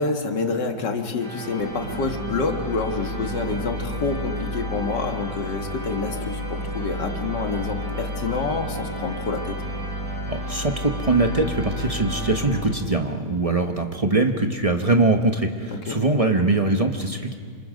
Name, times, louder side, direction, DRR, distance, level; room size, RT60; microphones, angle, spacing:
voice 1, 0.0-9.6 15.7-16.0, left 4 dB, 70° left, 4 dB, 2.3 m, -27 dB
sound 1, 1.2-13.1, equal, 60° right, 3.9 m, -31 dB
voice 2, 10.3-17.3, right 2 dB, 25° right, 4 dB, 0.9 m, -22 dB
27.5 x 26.5 x 5.2 m, 2.1 s
omnidirectional pair, 1.9 m